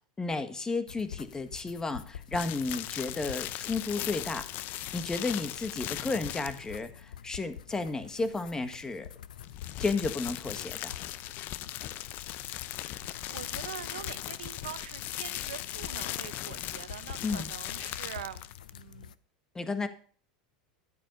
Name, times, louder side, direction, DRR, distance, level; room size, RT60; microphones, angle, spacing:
voice 1, 0.2-4.5 4.9-9.1 9.8-10.9 17.2-17.5 19.5-19.9, left 3 dB, 15° left, 10 dB, 1.6 m, -33 dB
sound 1, 0.9-19.1, left 9 dB, 85° left, 0.6 m, -48 dB
sound 2, 2.3-6.8 9.3-18.9, left 14 dB, 50° left, 0.7 m, -38 dB
voice 2, 13.3-18.4 18.7-19.1, right 11 dB, 85° right, 13 dB, 0.9 m, -44 dB
12.0 x 8.8 x 5.4 m, 0.43 s
hypercardioid pair, 105°, 4 cm